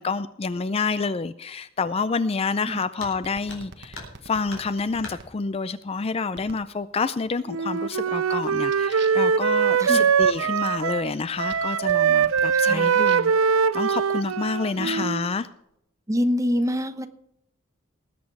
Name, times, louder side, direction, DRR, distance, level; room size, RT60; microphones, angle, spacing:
voice 1, 0.0-15.5, left 4 dB, 30° left, 14 dB, 0.4 m, -28 dB
sound 1, 3.0-3.2 3.5-4.2 4.5-5.2 6.4-6.5 7.0-7.1 7.8-8.2 8.6-8.9, left 2 dB, 65° left, 3.9 m, -41 dB
sound 2, 3.2-5.3 6.3-6.7 7.2-7.6 8.0-13.4 14.2-15.4, right 4 dB, 60° right, 1.5 m, -48 dB
Wind instrument woodwind instrument, 7.5-11.1 11.4-15.3, right 6 dB, 85° right, 0.5 m, -22 dB
voice 2, 9.8-10.1 12.5-13.0 14.8-15.1 16.1-17.1, equal, 15° right, 9 dB, 0.9 m, -26 dB
20.0 x 8.4 x 4.7 m, 0.79 s
head